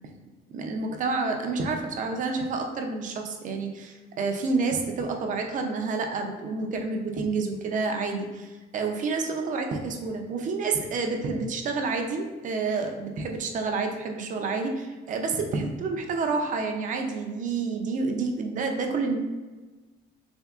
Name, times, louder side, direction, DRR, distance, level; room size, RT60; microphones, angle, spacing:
voice 1, 0.5-19.2, right 4 dB, 45° right, 4 dB, 0.4 m, -29 dB
3.5 x 2.7 x 2.3 m, 1.3 s
cardioid pair, 150°, 19 cm